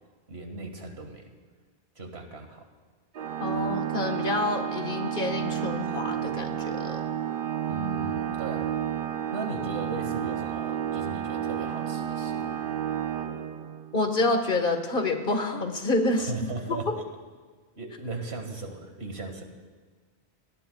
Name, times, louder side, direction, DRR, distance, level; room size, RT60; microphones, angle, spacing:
voice 1, 0.3-1.3 2.0-2.6 7.7-8.7 9.3-12.6 16.1-16.9 17.8-19.4, right 3 dB, 80° right, 4 dB, 2.1 m, -37 dB
Organ, 3.1-14.0, right 9 dB, 60° right, 0.8 m, -31 dB
voice 2, 3.4-7.0 13.9-16.3 16.7-16.9, left 2 dB, 55° left, 5 dB, 1.7 m, -28 dB
27.5 x 18.5 x 2.4 m, 1.5 s
omnidirectional pair, 1.1 m